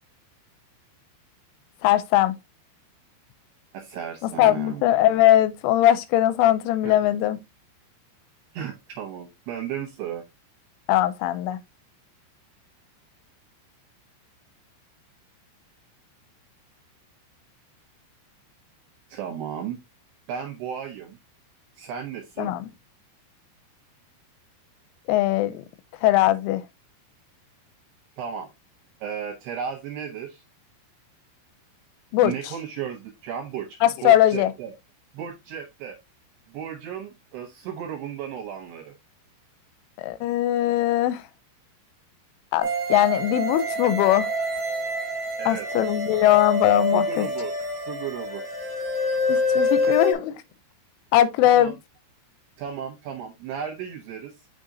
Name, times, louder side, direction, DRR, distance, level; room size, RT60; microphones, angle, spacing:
voice 1, 1.8-2.4 4.2-7.4 10.9-11.6 22.4-22.7 25.1-25.6 26.0-26.6 32.1-32.3 33.8-34.5 40.0-41.2 42.5-44.3 45.5-47.3 49.3-50.3 51.1-51.8, left 13 dB, 85° left, 3.0 m, -20 dB
voice 2, 3.7-4.8 6.8-6.9 8.5-10.2 19.1-19.8 20.3-21.2 21.8-22.5 28.2-28.5 29.0-30.4 32.2-34.7 35.1-36.0 36.5-38.9 45.4-45.7 46.9-47.5 47.8-48.4 51.4-51.7 52.6-54.3, right 8 dB, 75° right, 2.5 m, -34 dB
sound 1, 42.6-50.1, left 1 dB, 35° right, 1.1 m, -26 dB
6.5 x 6.1 x 2.6 m
omnidirectional pair, 5.8 m